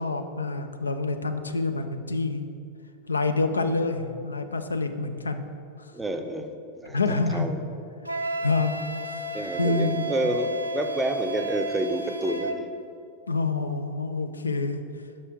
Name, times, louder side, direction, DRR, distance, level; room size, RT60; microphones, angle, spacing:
voice 1, 0.0-2.5 3.1-5.4 6.9-7.5 8.4-8.7 9.1-9.2 9.6-10.1 13.3-14.8, left 3 dB, 80° left, 8 dB, 0.4 m, -27 dB
voice 2, 5.9-7.6 9.3-12.7, right 1 dB, 10° right, 6 dB, 0.5 m, -29 dB
Wind instrument woodwind instrument, 8.0-12.6, right 3 dB, 85° right, 0.4 m, -32 dB
6.1 x 5.4 x 4.6 m, 2.5 s
figure-of-eight pair, 90°, 0 cm